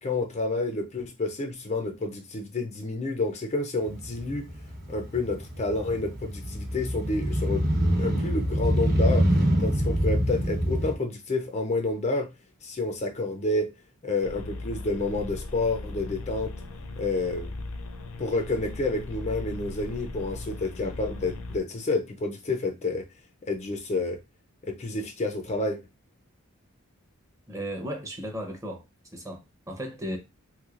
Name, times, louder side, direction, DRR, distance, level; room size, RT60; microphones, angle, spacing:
voice 1, 0.0-4.5 4.9-7.6 8.0-9.3 9.6-12.3 12.6-13.7 14.0-16.5 17.0-17.5 18.2-23.0 23.5-24.2 24.7-25.8, left 2 dB, 30° left, 0.4 m, -29 dB
Motorcycle, 3.8-10.9, equal, 40° right, 0.9 m, -26 dB
sound 1, 14.2-21.6, left 2 dB, 80° left, 0.6 m, -38 dB
voice 2, 27.5-28.8 29.1-30.2, equal, 15° right, 0.6 m, -35 dB
3.1 x 3.0 x 2.4 m
head